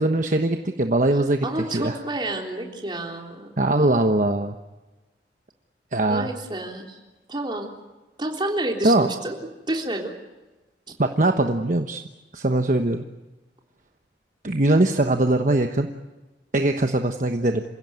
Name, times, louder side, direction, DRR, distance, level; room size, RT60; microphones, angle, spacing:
voice 1, 0.0-2.0 3.6-4.6 5.9-6.3 8.8-9.1 11.0-12.0 12.3-13.0 14.4-15.9 16.5-17.6, right 2 dB, 45° right, 6 dB, 1.1 m, -21 dB
voice 2, 1.4-3.5 6.1-7.0 7.3-7.7 8.2-9.4 9.7-10.1, right 1 dB, 25° right, 2 dB, 3.6 m, -29 dB
28.0 x 16.5 x 9.4 m, 1.1 s
head